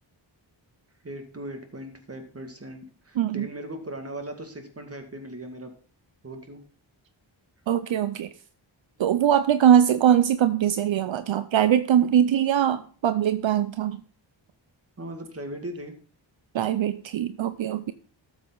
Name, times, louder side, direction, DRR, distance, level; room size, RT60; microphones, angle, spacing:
voice 1, 1.0-5.7 6.2-6.6 15.0-15.9, right 1 dB, 30° right, 5 dB, 2.1 m, -38 dB
voice 2, 3.2-3.5 7.7-8.3 9.0-14.0 16.5-17.9, right 9 dB, 75° right, 12 dB, 0.6 m, -22 dB
13.0 x 7.3 x 3.9 m, 0.43 s
wide cardioid pair, 80°, 46 cm